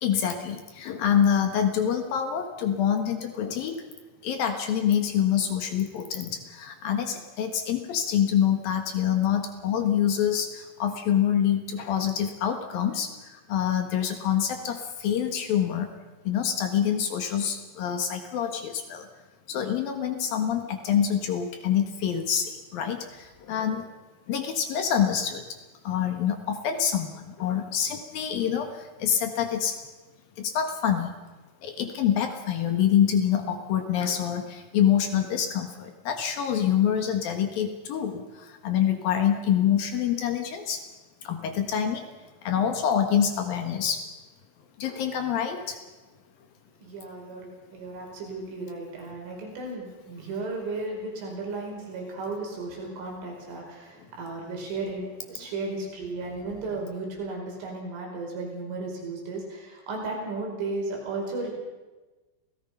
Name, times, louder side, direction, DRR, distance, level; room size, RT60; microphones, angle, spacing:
voice 1, 0.0-3.8 4.2-15.9 16.2-19.1 19.5-23.9 24.3-25.6 25.8-29.8 30.4-31.1 31.6-40.8 41.2-42.1 42.4-44.1 44.8-45.8, left 9 dB, 60° left, 6 dB, 2.8 m, -26 dB
voice 2, 46.8-61.5, right 3 dB, 85° right, 0 dB, 7.6 m, -35 dB
28.0 x 18.0 x 5.7 m, 1.2 s
omnidirectional pair, 5.5 m